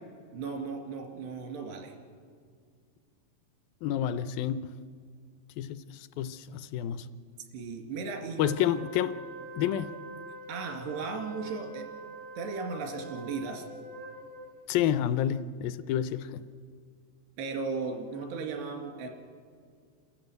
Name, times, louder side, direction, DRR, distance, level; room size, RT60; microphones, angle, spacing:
voice 1, 0.3-1.9 7.5-8.5 10.5-11.9 12.4-13.6 17.4-19.1, right 4 dB, 85° right, 4.5 m, -36 dB
voice 2, 3.8-4.7 5.6-7.1 8.4-9.2 9.6-9.9 14.7-16.4, left 10 dB, 80° left, 2.1 m, -29 dB
Wind instrument woodwind instrument, 8.4-14.7, right 2 dB, 65° right, 0.9 m, -44 dB
28.5 x 13.5 x 8.1 m
omnidirectional pair, 4.7 m